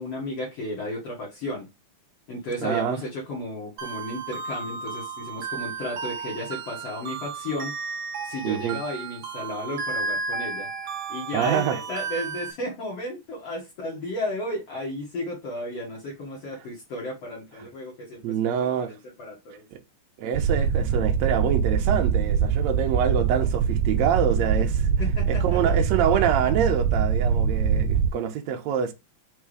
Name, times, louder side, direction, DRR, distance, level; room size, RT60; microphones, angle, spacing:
voice 1, 0.0-1.7 2.3-7.7 8.2-10.7 11.1-19.7 25.0-25.7, left 1 dB, 55° left, 2.6 m, -34 dB
voice 2, 2.6-3.0 8.4-8.8 11.3-11.8 18.2-18.9 19.7-19.8 20.2-24.9 25.3-28.9, right 8 dB, 70° right, 1.9 m, -26 dB
sound 1, 3.8-12.5, right 4 dB, 55° right, 1.4 m, -33 dB
sound 2, 20.3-28.1, right 7 dB, 90° right, 2.1 m, -23 dB
5.5 x 3.6 x 4.9 m
omnidirectional pair, 3.5 m